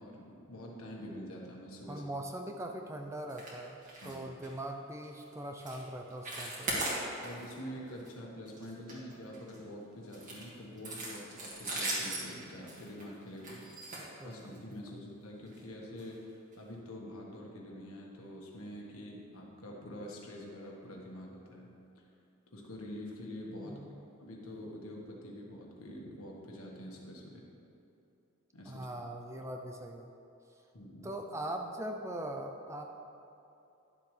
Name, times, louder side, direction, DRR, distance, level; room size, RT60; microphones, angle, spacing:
voice 1, 0.0-2.0 4.0-4.3 7.2-13.9 14.2-21.7 22.5-23.8 24.2-27.5 28.5-28.9 30.7-31.1, equal, 75° left, -2 dB, 1.5 m, -46 dB
voice 2, 1.9-3.8 4.0-6.7 13.9-15.0 23.6-24.1 28.7-30.1 31.0-32.9, right 1 dB, 15° right, 3 dB, 0.4 m, -41 dB
sound 1, 3.3-3.5 3.8-4.1 4.4-4.6 5.0-5.2 5.6-5.8 6.1-7.5 7.9-8.1 8.5-9.6 10.1-14.7 15.5-15.6 16.0-16.1 16.5-16.6, right 2 dB, 35° right, 2.0 m, -39 dB
11.5 x 7.3 x 3.3 m, 2.8 s
head